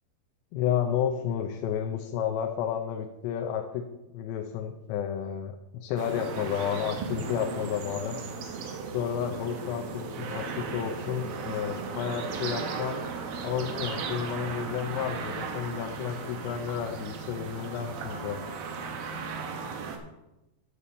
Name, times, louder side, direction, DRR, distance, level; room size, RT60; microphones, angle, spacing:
voice 1, 0.5-3.9 4.1-8.2 8.9-13.0 13.4-18.4, left 9 dB, 85° left, 4 dB, 2.9 m, -31 dB
sound 1, 6.0-20.0, right 5 dB, 70° right, 2.5 m, -36 dB
11.5 x 4.2 x 6.8 m, 0.96 s
omnidirectional pair, 4.9 m